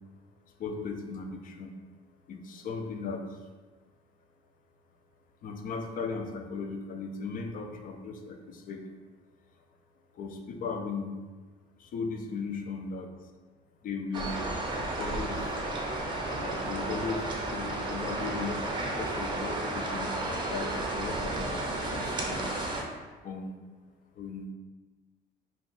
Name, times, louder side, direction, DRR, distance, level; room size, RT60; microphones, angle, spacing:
voice 1, 0.6-1.8 2.3-3.5 5.4-8.8 10.1-11.1 11.8-13.1 13.8-14.4 14.9-22.4 23.2-23.7 24.1-24.5, left 4 dB, 55° left, 4 dB, 0.4 m, -37 dB
sound 1, 14.1-22.8, right 2 dB, 30° right, 0.5 m, -33 dB
2.6 x 2.3 x 3.9 m, 1.3 s
cardioid pair, 110°, 17 cm